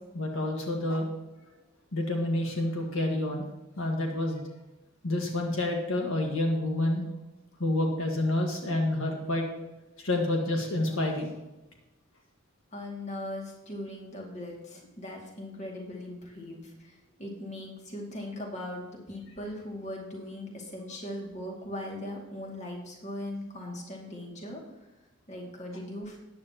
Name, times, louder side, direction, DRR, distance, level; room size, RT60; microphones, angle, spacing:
voice 1, 0.1-1.1 1.9-3.5 3.8-4.4 5.0-7.0 7.6-9.5 10.0-11.3, left 1 dB, 75° left, 1 dB, 1.7 m, -28 dB
voice 2, 12.7-24.6 25.3-26.2, left 1 dB, 35° left, -1 dB, 2.4 m, -39 dB
13.5 x 9.6 x 3.0 m, 1.0 s
head